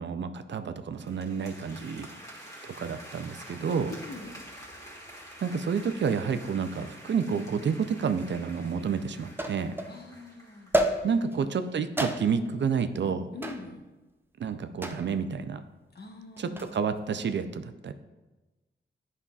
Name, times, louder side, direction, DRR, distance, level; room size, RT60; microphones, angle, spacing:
voice 1, 0.0-2.1 2.7-3.9 5.4-9.7 11.0-13.3 14.4-15.6 16.4-17.9, right 6 dB, 65° right, 10 dB, 0.4 m, -30 dB
sound 1, 0.9-11.3, equal, 15° left, 1.7 m, -48 dB
voice 2, 3.9-4.4 9.9-11.8 13.3-13.8 15.9-16.7, left 2 dB, 55° left, 3 dB, 1.0 m, -44 dB
sound 2, 8.2-8.3 9.4-10.0 10.7-11.4 12.0-12.5 13.4-13.7 14.8-15.2 16.4-16.8, right 1 dB, 10° right, 0.5 m, -29 dB
9.8 x 5.4 x 2.4 m, 1.1 s
wide cardioid pair, 90°, 20 cm